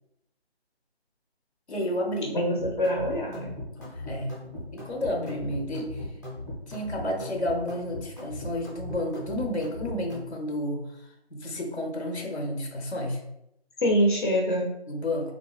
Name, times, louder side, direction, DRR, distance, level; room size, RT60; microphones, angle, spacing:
voice 1, 1.7-2.4 3.8-6.1 6.7-13.2 14.9-15.3, left 1 dB, 85° left, 1 dB, 1.0 m, -31 dB
voice 2, 2.3-3.5 13.8-14.7, equal, 50° left, -1 dB, 0.8 m, -24 dB
sound 1, 2.6-10.3, left 2 dB, 15° left, 0.8 m, -38 dB
3.6 x 2.8 x 2.3 m, 0.82 s
figure-of-eight pair, 170°, 32 cm